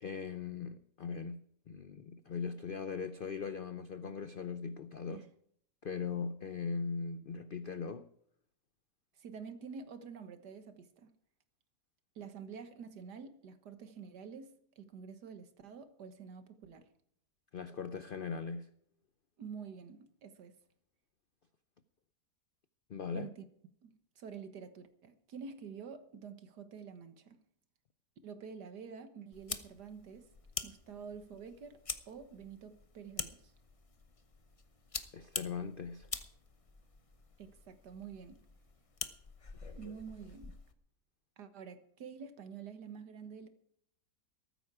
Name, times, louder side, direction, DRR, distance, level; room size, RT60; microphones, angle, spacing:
voice 1, 0.0-5.2 5.8-8.1 17.5-18.7 22.9-23.3 35.1-36.1, left 5 dB, 85° left, 0.4 m, -40 dB
voice 2, 9.2-11.1 12.2-16.9 19.4-20.5 23.1-23.4 23.8-27.4 28.2-30.3 30.6-31.8 32.1-33.5 37.4-38.4 39.7-40.6 41.4-43.5, right 6 dB, 75° right, 1.8 m, -48 dB
sound 1, 29.3-40.7, left 4 dB, 30° left, 0.6 m, -46 dB
14.5 x 13.5 x 4.8 m
omnidirectional pair, 1.8 m